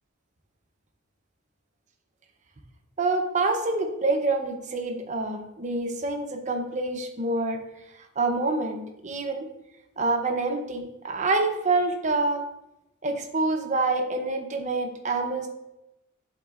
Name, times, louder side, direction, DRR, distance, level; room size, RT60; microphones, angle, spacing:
voice 1, 3.0-7.6 8.2-9.4 10.0-12.4 13.0-15.5, right 3 dB, 35° right, 4 dB, 0.7 m, -26 dB
11.0 x 3.7 x 2.5 m, 0.90 s
head